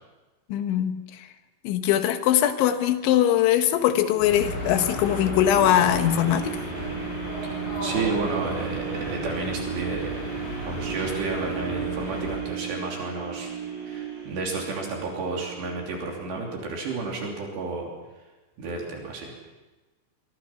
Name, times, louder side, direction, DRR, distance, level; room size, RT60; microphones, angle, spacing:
voice 1, 0.5-1.3 1.7-6.6, left 11 dB, 70° left, 8 dB, 3.4 m, -21 dB
sound 1, 4.2-12.4, left 1 dB, 40° left, 7.5 m, -34 dB
sound 2, 4.5-16.6 17.1-17.2, right 10 dB, 35° right, 5.5 m, -35 dB
voice 2, 7.8-10.2 10.7-13.5 13.9-17.9 18.6-19.3, right 3 dB, 60° right, 0 dB, 5.0 m, -31 dB
25.5 x 24.0 x 5.9 m, 1.2 s
omnidirectional pair, 6.0 m